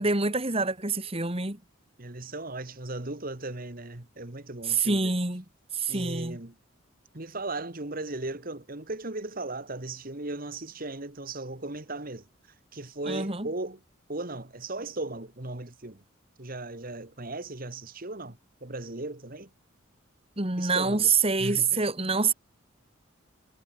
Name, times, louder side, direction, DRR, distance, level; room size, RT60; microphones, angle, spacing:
voice 1, 0.0-1.6 4.6-5.4 5.7-6.4 13.1-13.5 20.4-22.3, right 4 dB, 30° right, 2.9 m, -26 dB
voice 2, 2.0-5.2 5.9-6.5 7.1-12.3 12.7-13.8 14.1-16.0 16.4-19.5 20.6-21.1 21.4-21.9, right 2 dB, 45° right, 1.9 m, -37 dB
head